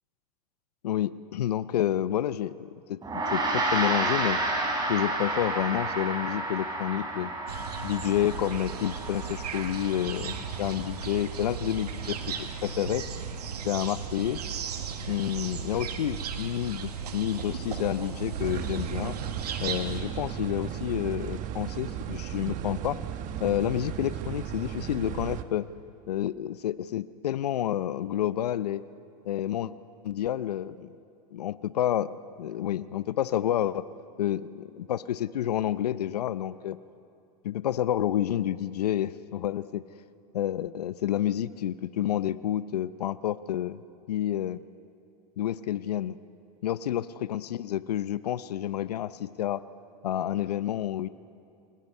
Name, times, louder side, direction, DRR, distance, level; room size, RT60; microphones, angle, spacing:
voice 1, 0.8-4.4 4.9-7.3 7.8-13.1 13.6-14.4 15.1-19.2 19.6-23.0 23.4-25.7 26.1-28.8 29.3-29.7 30.0-31.0 31.3-33.9 34.2-36.8 37.4-39.8 40.3-43.8 44.1-44.6 45.4-46.2 46.6-47.0 47.3-49.6 50.0-51.1, left 11 dB, 85° left, 16 dB, 0.6 m, -29 dB
Gong, 3.0-12.6, right 2 dB, 20° right, 4.6 m, -32 dB
sound 1, 7.5-20.0, right 7 dB, 90° right, 1.8 m, -36 dB
sound 2, 18.3-25.4, right 10 dB, 40° right, 1.3 m, -35 dB
27.5 x 21.0 x 5.5 m, 2.5 s
hypercardioid pair, 115°, 20 cm